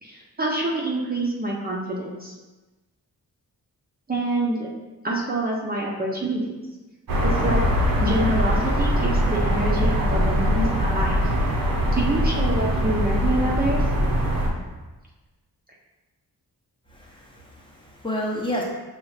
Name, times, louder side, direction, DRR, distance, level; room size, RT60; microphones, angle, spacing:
voice 1, 0.0-2.3 4.1-4.7 5.0-6.6 7.2-7.6 8.0-11.4 11.9-13.8, right 1 dB, 25° right, -4 dB, 0.5 m, -26 dB
sound 1, 7.1-14.5, equal, 65° right, 0.8 m, -22 dB
voice 2, 16.9-18.6, left 1 dB, 15° left, -4 dB, 0.6 m, -30 dB
6.2 x 2.4 x 3.2 m, 1.2 s
wide cardioid pair, 155°, 37 cm